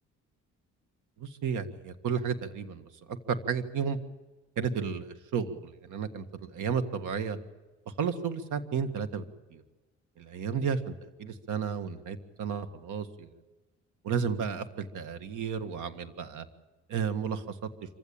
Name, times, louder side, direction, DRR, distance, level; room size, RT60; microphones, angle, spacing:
voice 1, 1.2-4.0 4.6-7.4 8.0-9.2 9.5-9.6 10.2-13.3 14.0-16.5 16.9-17.7, right 6 dB, 80° right, 10 dB, 1.9 m, -33 dB
26.0 x 16.0 x 8.8 m, 1.2 s
cardioid pair, 90°, 30 cm